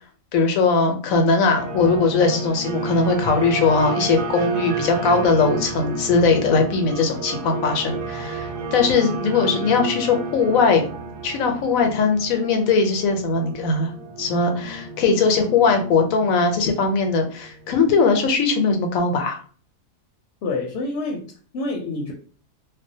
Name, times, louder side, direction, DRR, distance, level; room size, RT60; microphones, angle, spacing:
voice 1, 0.3-10.8 11.2-13.9 14.2-19.4, left 4 dB, 90° left, 5 dB, 1.0 m, -20 dB
sound 1, 1.6-17.9, right 3 dB, 90° right, 1.0 m, -31 dB
voice 2, 20.4-22.1, left 2 dB, 65° left, -1 dB, 0.8 m, -28 dB
2.5 x 2.0 x 2.7 m, 0.42 s
omnidirectional pair, 1.4 m